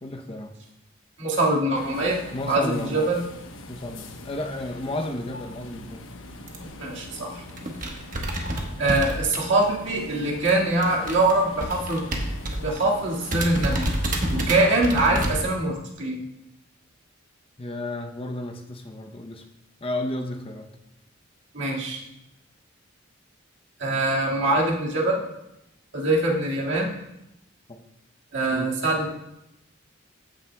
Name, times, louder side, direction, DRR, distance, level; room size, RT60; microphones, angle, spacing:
voice 1, 0.0-0.6 2.3-3.1 3.7-6.1 17.6-19.4 19.8-20.7 27.7-27.9 28.5-28.7, left 1 dB, 25° left, 4 dB, 0.6 m, -32 dB
voice 2, 1.2-3.2 6.8-7.4 8.8-12.0 12.5-13.8 14.3-16.2 21.5-22.0 23.8-25.2 25.9-26.9 28.3-29.1, right 2 dB, 60° right, -3 dB, 1.9 m, -23 dB
sound 1, 1.7-15.6, left 2 dB, 80° left, 1.0 m, -42 dB
sound 2, 6.5-6.7 7.2-7.3 7.5-9.9 10.1-12.8 13.0-13.1 13.3-15.3, right 1 dB, 40° right, 1.2 m, -28 dB
14.0 x 8.9 x 2.2 m, 0.88 s
head